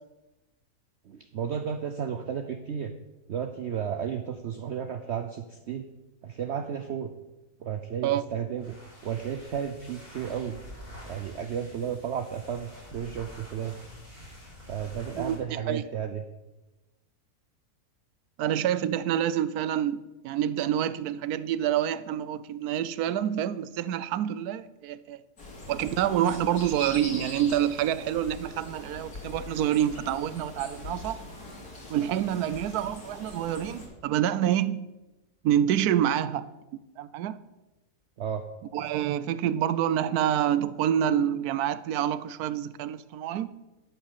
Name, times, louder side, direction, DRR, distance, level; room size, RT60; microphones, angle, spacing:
voice 1, 1.1-2.9 3.3-5.9 6.2-7.1 7.6-8.8 9.0-10.6 11.1-13.7 14.7-16.2 38.2-38.5, right 8 dB, 60° right, 0.7 m, -33 dB
sound 1, 8.5-15.4, left 1 dB, 35° left, 4.7 m, -47 dB
voice 2, 18.4-25.2 25.7-31.2 31.9-34.9 35.4-36.5 37.0-37.4 38.7-43.5, right 10 dB, 80° right, 1.1 m, -27 dB
sound 2, 25.4-33.9, left 2 dB, 80° left, 3.2 m, -42 dB
12.0 x 5.7 x 7.4 m
omnidirectional pair, 1.6 m